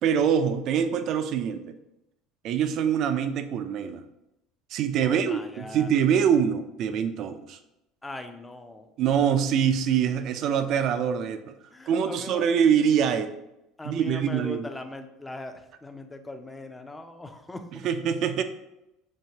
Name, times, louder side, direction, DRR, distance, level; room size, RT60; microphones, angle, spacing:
voice 1, 0.0-1.7 2.4-4.0 4.7-7.6 9.0-11.5 11.9-13.3 13.8-14.7 17.7-18.4, right 8 dB, 55° right, 9 dB, 0.3 m, -24 dB
voice 2, 5.0-5.9 8.0-8.9 11.7-12.5 13.8-17.6, left 2 dB, 10° left, 7 dB, 0.4 m, -40 dB
4.6 x 2.8 x 2.8 m, 0.88 s
supercardioid pair, 115°, 0 cm